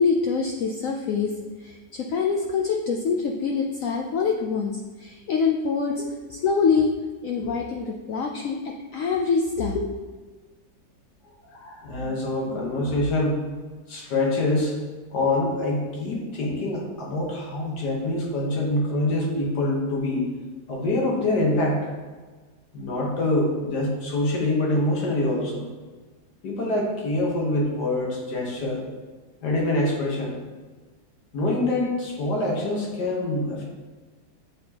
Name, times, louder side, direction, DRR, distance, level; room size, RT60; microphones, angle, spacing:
voice 1, 0.0-1.3 1.6-6.9 7.2-9.9, left 5 dB, 90° left, 1 dB, 0.7 m, -25 dB
voice 2, 11.5-13.4 13.9-14.8 15.1-20.3 20.7-21.9 22.7-25.7 26.4-28.8 29.4-30.4 31.3-33.6, left 2 dB, 65° left, -2 dB, 1.7 m, -25 dB
8.3 x 4.3 x 2.9 m, 1.3 s
omnidirectional pair, 2.0 m